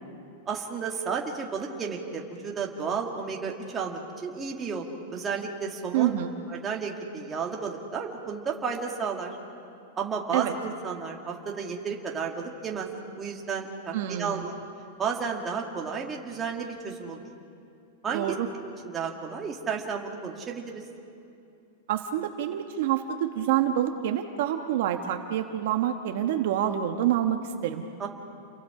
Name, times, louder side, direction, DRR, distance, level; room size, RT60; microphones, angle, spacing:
voice 1, 0.5-4.9 5.1-6.1 6.5-9.3 10.0-12.9 13.2-14.5 15.0-17.2 18.0-18.2 18.6-20.8 28.0-28.1, right 5 dB, 15° right, 0 dB, 1.9 m, -32 dB
voice 2, 5.9-6.3 10.3-10.5 13.9-14.4 18.1-18.5 21.9-27.8, right 11 dB, 55° right, 5 dB, 1.2 m, -27 dB
30.0 x 23.0 x 4.9 m, 2.6 s
supercardioid pair, 165°, 0 cm